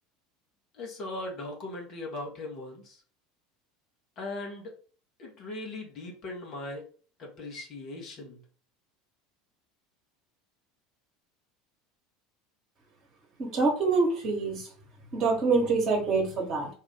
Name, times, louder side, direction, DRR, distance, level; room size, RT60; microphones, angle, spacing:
voice 1, 0.7-3.0 4.2-4.7 5.2-6.9 7.2-8.4, left 2 dB, 45° left, -1 dB, 1.2 m, -39 dB
voice 2, 13.4-14.7 15.1-16.7, right 4 dB, 40° right, 1 dB, 1.2 m, -25 dB
2.8 x 2.4 x 3.6 m, 0.41 s
figure-of-eight pair, 70°, 0 cm